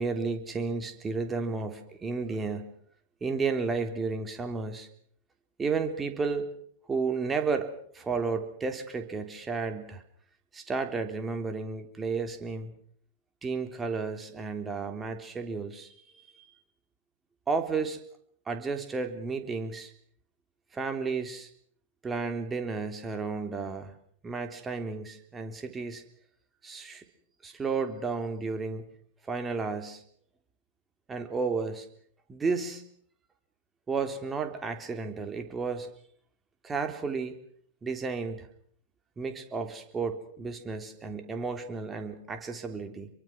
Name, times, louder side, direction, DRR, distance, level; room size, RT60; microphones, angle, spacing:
voice 1, 0.0-2.7 3.2-4.9 5.6-6.5 6.9-7.7 7.9-10.0 10.5-12.7 13.4-16.0 16.3-16.4 17.5-18.0 18.5-19.9 20.7-21.5 22.0-23.9 24.2-26.0 26.6-27.0 27.4-28.9 29.3-30.0 31.1-31.9 32.3-32.8 33.9-35.9 36.6-37.4 37.8-38.5 39.2-43.1, right 4 dB, 15° right, 6 dB, 3.6 m, -32 dB
27.5 x 23.5 x 6.3 m, 0.64 s
figure-of-eight pair, 100°, 0 cm